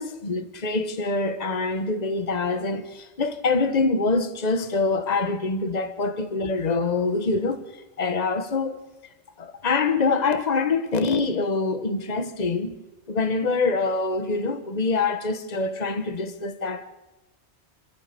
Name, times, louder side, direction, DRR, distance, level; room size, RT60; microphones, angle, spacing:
voice 1, 0.0-8.8 9.4-12.8 13.1-16.9, left 3 dB, 40° left, 1.3 m, -25 dB
27.5 x 14.0 x 6.8 m
omnidirectional pair, 1.2 m